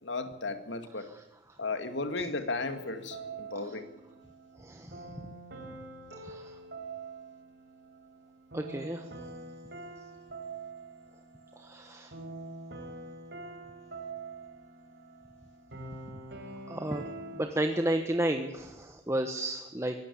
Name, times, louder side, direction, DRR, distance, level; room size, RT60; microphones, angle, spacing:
voice 1, 0.0-1.1 1.6-3.9, left 3 dB, 75° left, 9 dB, 2.3 m, -35 dB
sound 1, 2.6-17.5, right 3 dB, 65° right, 4.6 m, -45 dB
voice 2, 4.6-5.1 6.2-6.5 8.5-9.1 11.6-12.1 16.7-17.1 17.3-19.9, right 1 dB, 15° right, 5 dB, 1.2 m, -32 dB
24.0 x 18.0 x 8.5 m, 1.0 s
head